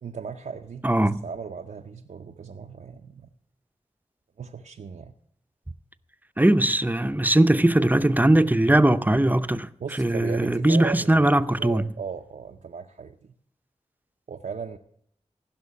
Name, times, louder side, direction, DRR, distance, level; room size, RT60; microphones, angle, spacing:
voice 1, 0.0-3.3 4.4-5.1 9.5-13.3 14.3-14.8, right 6 dB, 80° right, 0.6 m, -37 dB
voice 2, 0.8-1.2 6.4-9.7 10.0-11.9, right 1 dB, 15° right, 0.7 m, -20 dB
15.5 x 6.1 x 9.5 m
cardioid pair, 40°, 13 cm